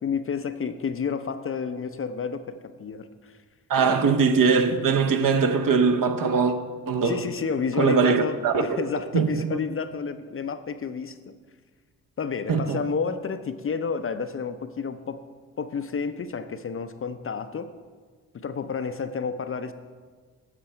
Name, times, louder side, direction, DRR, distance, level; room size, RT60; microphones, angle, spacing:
voice 1, 0.0-3.4 4.0-4.1 7.0-11.3 12.2-15.2 15.6-17.7 18.3-19.7, left 6 dB, 30° left, 0.6 m, -30 dB
voice 2, 3.7-6.5 6.9-7.2 7.8-8.8 9.1-9.6 12.5-12.8, right 5 dB, 50° right, 1.0 m, -21 dB
11.0 x 7.6 x 4.4 m
hypercardioid pair, 45°, 44 cm